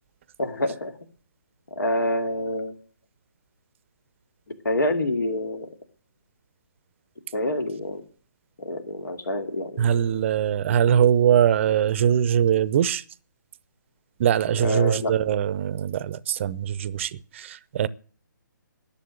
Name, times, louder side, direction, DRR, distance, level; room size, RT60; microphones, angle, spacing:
voice 1, 0.4-0.9 1.8-2.7 4.6-5.7 7.3-8.0 8.6-9.9 14.5-15.1, left 1 dB, 70° left, 2.6 m, -26 dB
voice 2, 9.8-13.0 14.2-17.9, right 9 dB, 35° right, 0.6 m, -22 dB
11.0 x 7.3 x 9.4 m
figure-of-eight pair, 150°, 11 cm